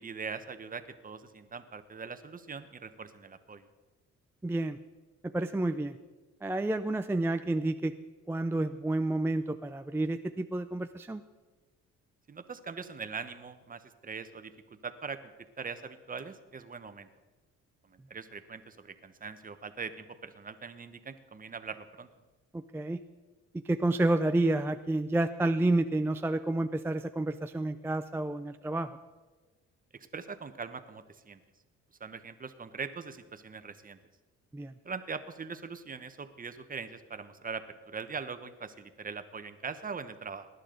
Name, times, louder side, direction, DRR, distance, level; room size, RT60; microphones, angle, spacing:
voice 1, 0.0-3.6 12.3-14.5 14.8-15.2 15.6-17.1 17.9-22.1 30.1-31.4 32.0-34.0 34.8-40.5, right 5 dB, 30° right, 10 dB, 1.0 m, -41 dB
voice 2, 4.4-4.8 5.2-6.0 6.4-7.9 8.3-11.2 22.5-23.0 23.5-28.9 34.5-34.7, right 2 dB, 10° right, 9 dB, 0.4 m, -30 dB
19.0 x 10.5 x 3.9 m, 1.3 s
cardioid pair, 90°, 30 cm